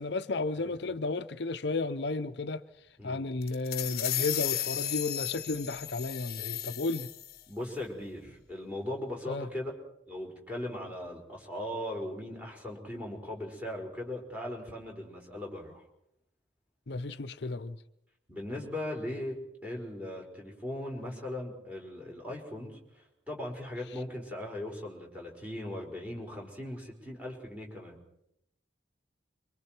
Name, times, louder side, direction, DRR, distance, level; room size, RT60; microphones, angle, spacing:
voice 1, 0.0-2.6 3.0-7.1 9.3-9.5 16.9-17.8, left 3 dB, 70° left, 0.7 m, -33 dB
voice 2, 3.0-3.3 7.5-9.7 10.1-15.8 18.3-28.0, left 1 dB, 10° right, 5.1 m, -39 dB
sound 1, 3.4-7.4, left 13 dB, 50° left, 1.0 m, -34 dB
27.0 x 24.5 x 4.5 m
head